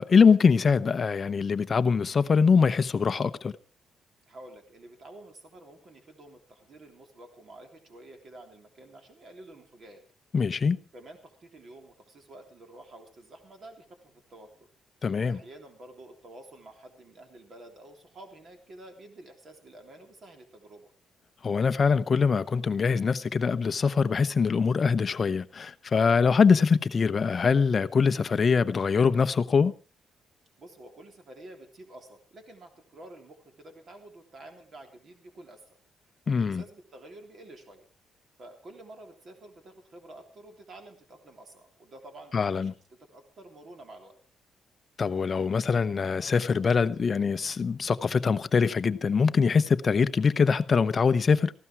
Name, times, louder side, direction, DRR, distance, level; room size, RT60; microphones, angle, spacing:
voice 1, 0.0-3.5 10.3-10.8 15.0-15.4 21.4-29.7 36.3-36.6 42.3-42.7 45.0-51.5, left 5 dB, 30° left, 0.8 m, -23 dB
voice 2, 4.3-10.0 10.9-14.7 15.2-20.9 30.6-35.8 36.2-37.9 38.4-42.7 43.1-44.2, right 1 dB, 35° right, 3.4 m, -49 dB
18.5 x 15.0 x 4.6 m
cardioid pair, 175°, 0 cm